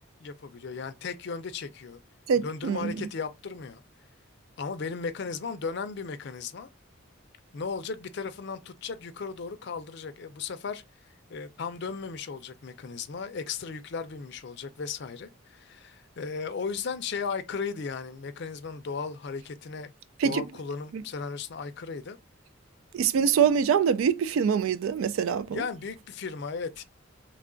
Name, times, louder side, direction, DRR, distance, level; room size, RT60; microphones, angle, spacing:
voice 1, 0.2-2.0 2.4-3.8 4.6-6.7 7.5-10.8 11.3-19.9 20.2-22.2 25.5-26.8, left 5 dB, 55° left, 0.4 m, -36 dB
voice 2, 2.3-3.0 20.2-20.4 20.9-21.0 22.9-25.6, right 7 dB, 75° right, 0.3 m, -24 dB
3.3 x 2.3 x 3.7 m
head